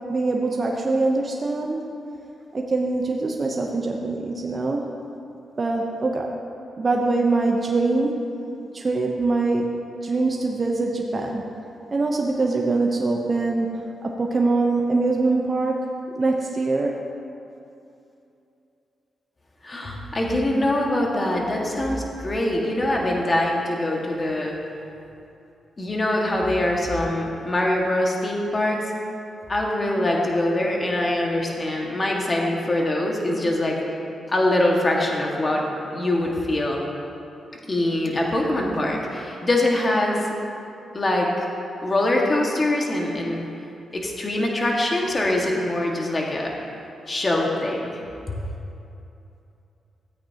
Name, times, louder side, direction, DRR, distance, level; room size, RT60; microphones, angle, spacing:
voice 1, 0.1-1.8 2.5-4.9 5.6-6.3 6.8-8.3 8.7-9.7 10.0-11.4 11.9-13.7 14.0-15.9 16.2-17.0, right 3 dB, 40° right, 0 dB, 0.9 m, -23 dB
voice 2, 19.6-24.5 25.8-28.8 29.5-33.8 34.3-35.6 35.9-36.8 37.7-40.3 40.9-41.5 41.8-43.5 43.9-46.5 47.1-48.0, left 1 dB, 35° left, -1 dB, 1.8 m, -23 dB
14.5 x 8.7 x 2.9 m, 2.8 s
cardioid pair, 60°, 0 cm